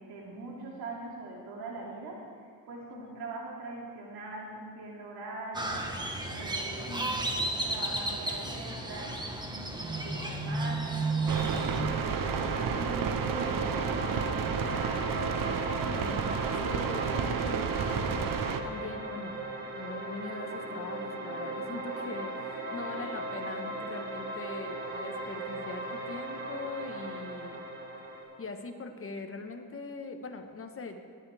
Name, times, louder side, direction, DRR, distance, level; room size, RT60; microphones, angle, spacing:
voice 1, 0.0-5.9 6.2-7.2 7.6-15.0 22.7-22.8, right 2 dB, 80° right, -2 dB, 2.9 m, -42 dB
voice 2, 2.9-3.2 6.8-7.3 15.8-16.3 16.6-19.4 19.7-27.6 28.4-31.0, left 3 dB, 35° left, 5 dB, 1.5 m, -41 dB
Crow, 5.5-11.8, right 2 dB, 10° right, 1.5 m, -33 dB
sound 1, 11.2-28.2, right 2 dB, 30° right, 3.6 m, -38 dB
sound 2, 11.3-18.6, right 6 dB, 60° right, 1.0 m, -31 dB
18.0 x 11.0 x 3.6 m, 2.1 s
cardioid pair, 85°, 37 cm